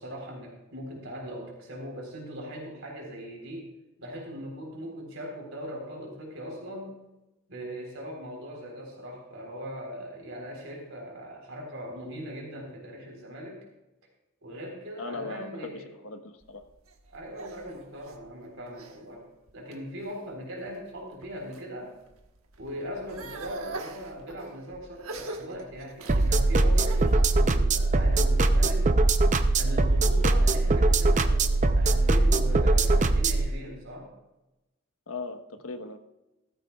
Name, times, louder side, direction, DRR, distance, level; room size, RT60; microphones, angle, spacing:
voice 1, 0.0-3.7 4.0-7.0 7.5-13.6 14.4-15.9 17.1-19.3 19.5-22.0 22.6-28.9 29.5-34.1, equal, 70° right, 0 dB, 3.8 m, -40 dB
voice 2, 15.0-15.7 16.0-16.6 35.1-36.0, left 3 dB, 90° left, 6 dB, 1.2 m, -38 dB
sound 1, 16.4-19.0 19.5-20.1 20.7-21.7 22.0-27.2, right 2 dB, 85° right, 1.3 m, -43 dB
sound 2, 26.1-33.5, right 2 dB, 35° right, 0.6 m, -22 dB
16.0 x 14.0 x 2.4 m, 0.98 s
head